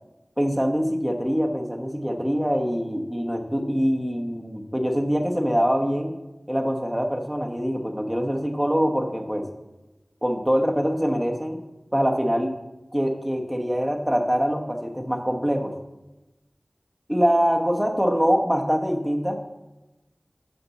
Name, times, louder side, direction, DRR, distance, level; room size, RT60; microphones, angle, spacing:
voice 1, 0.4-6.1 6.5-9.5 10.2-11.6 11.9-12.5 12.9-15.8 17.1-19.4, equal, 5° right, 3 dB, 1.1 m, -24 dB
6.9 x 5.2 x 7.1 m, 1.0 s
wide cardioid pair, 55°, 0 cm